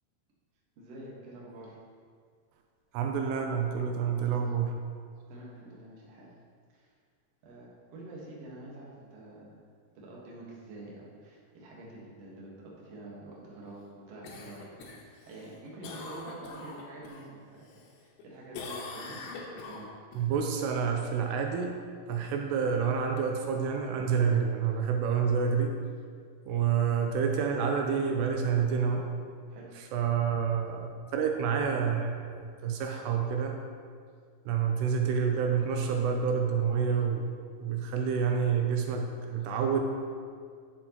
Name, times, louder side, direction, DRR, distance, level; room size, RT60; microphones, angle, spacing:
voice 1, 0.8-1.8 5.3-6.3 6.7-6.9 7.4-9.6 9.9-19.2 19.5-19.9 29.5-29.7, right 2 dB, 60° right, -4 dB, 1.8 m, -47 dB
voice 2, 2.9-4.8 19.1-19.2 20.2-21.8 22.1-25.8 26.5-29.1 29.9-32.2 32.6-33.6 34.5-39.8, right 6 dB, 80° right, 3 dB, 2.6 m, -28 dB
Cough, 14.2-17.2 17.6-18.2 18.5-20.2 24.6-24.7, left 4 dB, 75° left, 2.7 m, -43 dB
9.4 x 7.7 x 3.0 m, 2.1 s
omnidirectional pair, 4.9 m